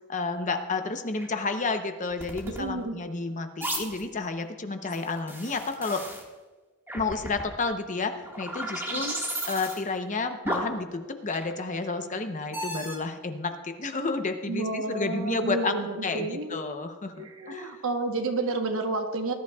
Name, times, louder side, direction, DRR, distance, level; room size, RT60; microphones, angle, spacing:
voice 1, 0.1-6.0 6.9-9.1 9.5-15.7 16.0-17.8, left 3 dB, 35° left, 7 dB, 0.8 m, -31 dB
sound 1, 1.1-1.3 2.1-2.6 3.6-4.0 4.8-6.2 6.9-7.5 8.1-9.8 10.5-10.8 11.3-11.7 12.5-13.0, right 1 dB, 10° right, 1.8 m, -34 dB
voice 2, 2.5-3.0 8.9-9.2 14.5-16.6 17.2-19.3, right 2 dB, 65° right, 5 dB, 1.2 m, -30 dB
19.0 x 11.0 x 2.4 m, 1.2 s
head